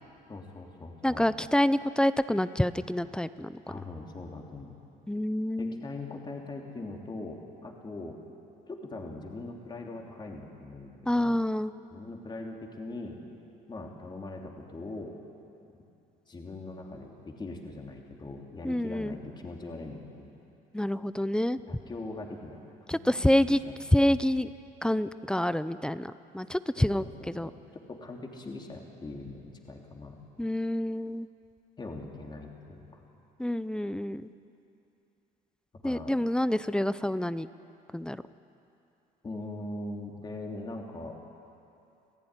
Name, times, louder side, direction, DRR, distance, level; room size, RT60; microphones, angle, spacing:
voice 1, 0.3-1.3 3.7-4.8 5.6-8.2 8.7-11.4 11.9-13.2 13.7-15.1 16.3-20.3 21.6-22.6 22.9-23.1 23.6-23.7 26.8-27.5 27.9-30.2 31.8-33.0 35.8-36.1 39.2-41.2, left 2 dB, 25° left, 1 dB, 3.2 m, -41 dB
voice 2, 1.0-3.6 5.1-5.8 11.1-11.7 18.6-19.2 20.7-21.6 22.9-23.6 23.9-24.5 24.8-27.5 30.4-31.3 33.4-34.2 35.8-37.5 37.9-38.2, left 1 dB, 5° left, 14 dB, 0.6 m, -27 dB
27.5 x 16.0 x 9.9 m, 2.8 s
cardioid pair, 110°, 17 cm